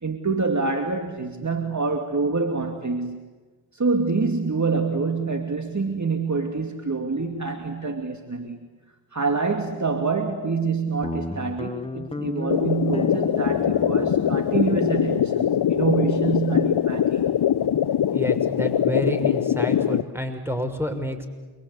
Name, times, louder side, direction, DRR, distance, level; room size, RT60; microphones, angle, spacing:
voice 1, 0.0-3.3 3.7-8.6 9.1-17.3, right 4 dB, 35° right, 5 dB, 2.6 m, -26 dB
Guitar, 11.0-17.7, left 2 dB, 10° left, 1.2 m, -35 dB
sound 1, 12.5-20.0, left 10 dB, 55° left, 0.8 m, -22 dB
voice 2, 18.1-21.3, equal, 5° right, 7 dB, 6.1 m, -29 dB
29.0 x 23.0 x 8.4 m, 1.3 s
supercardioid pair, 45°, 48 cm